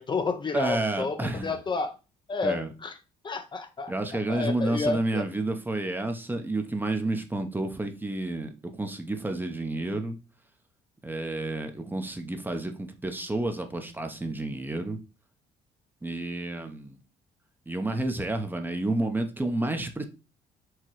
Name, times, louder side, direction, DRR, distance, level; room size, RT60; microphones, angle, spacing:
voice 1, 0.0-1.2 1.4-1.9 2.3-2.9 3.2-3.9 4.3-5.2, left 4 dB, 30° left, 0.5 m, -30 dB
voice 2, 0.5-1.6 2.4-2.7 3.9-10.2 11.0-15.0 16.0-17.0 17.7-20.0, right 2 dB, 10° right, 0.7 m, -30 dB
4.7 x 2.9 x 3.0 m
supercardioid pair, 80°, 16 cm